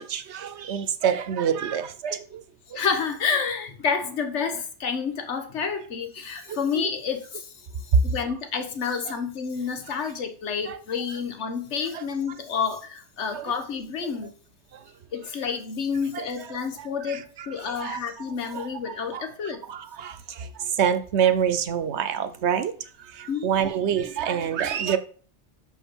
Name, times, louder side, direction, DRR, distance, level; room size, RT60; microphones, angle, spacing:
voice 1, 0.0-2.4 6.5-6.9 9.0-9.1 10.7-10.8 11.9-12.0 13.3-13.5 16.1-16.3 16.8-17.2 17.7-18.0 18.5-19.3 19.7-22.7 23.1-25.0, right 8 dB, 75° right, 1.1 m, -27 dB
voice 2, 2.7-14.3 15.1-19.6 23.3-23.5, left 6 dB, 90° left, 1.4 m, -29 dB
6.5 x 5.6 x 6.1 m
omnidirectional pair, 1.2 m